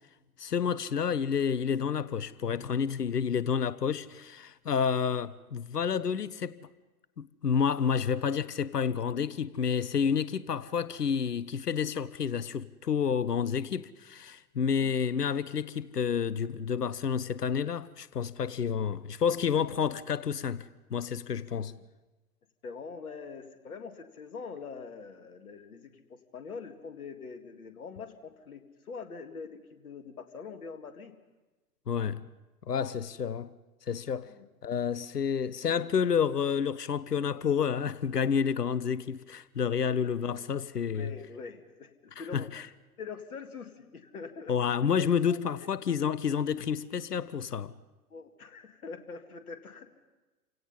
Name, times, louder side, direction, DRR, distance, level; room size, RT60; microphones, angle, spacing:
voice 1, 0.4-6.6 7.2-21.7 31.9-32.2 32.7-33.5 33.9-34.3 34.6-41.1 42.3-42.7 44.5-47.7, left 7 dB, 80° left, 0.8 m, -29 dB
voice 2, 22.6-31.1 34.3-34.5 40.3-40.4 40.8-42.5 43.0-44.9 45.3-45.7 48.1-49.9, left 5 dB, 65° left, 2.2 m, -44 dB
29.0 x 17.0 x 5.6 m
figure-of-eight pair, 115°, 46 cm